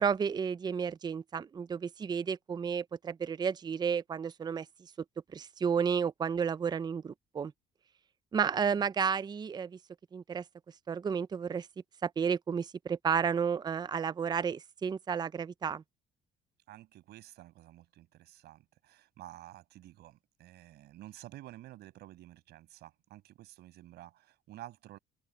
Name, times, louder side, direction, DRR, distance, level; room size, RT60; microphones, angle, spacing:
voice 1, 0.0-4.7 5.3-7.5 8.3-9.8 10.1-10.4 10.9-11.7 12.0-15.8, right 6 dB, 25° right, 0.5 m, -32 dB
voice 2, 16.7-25.0, right 15 dB, 75° right, 6.4 m, -51 dB
open air
cardioid pair, 110°, 17 cm